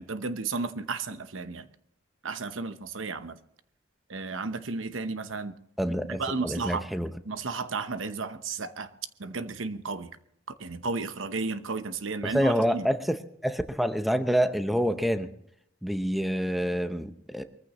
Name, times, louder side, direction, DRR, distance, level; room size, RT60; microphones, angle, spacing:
voice 1, 0.0-1.7 2.2-3.4 4.1-5.5 6.1-6.9 7.2-8.9 9.2-10.1 10.5-12.9, right 4 dB, 90° right, 1.0 m, -33 dB
voice 2, 5.8-7.1 12.2-15.3 15.8-17.4, equal, ahead, 0.7 m, -27 dB
23.0 x 14.5 x 3.1 m
head